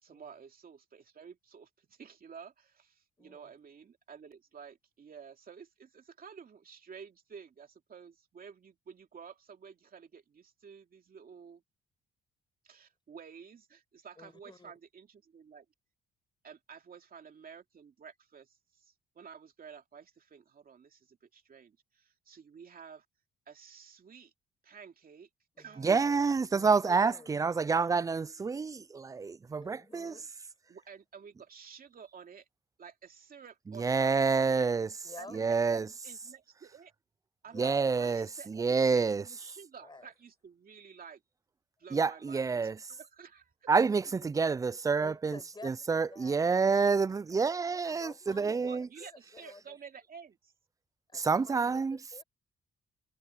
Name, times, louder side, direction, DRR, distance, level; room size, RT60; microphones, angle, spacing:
voice 1, 0.0-11.6 12.6-15.6 16.4-23.0 23.5-24.3 24.6-25.3 25.6-26.0 26.6-26.8 30.7-32.5 32.8-34.7 35.2-36.9 37.4-41.2 41.8-43.7 48.6-50.5, right 6 dB, 45° right, 2.7 m, -51 dB
voice 2, 3.2-3.5 14.2-14.7 25.6-26.2 26.5-27.4 29.5-30.3 35.0-35.4 37.4-37.9 39.8-40.1 45.0-46.7 47.3-48.7 49.0-49.8 51.1-52.2, left 3 dB, 20° left, 5.2 m, -51 dB
voice 3, 25.8-30.1 33.8-34.9 35.3-35.9 37.5-39.2 41.9-42.8 43.7-48.9 51.1-52.0, right 5 dB, 15° right, 0.3 m, -28 dB
cardioid pair, 90°, 20 cm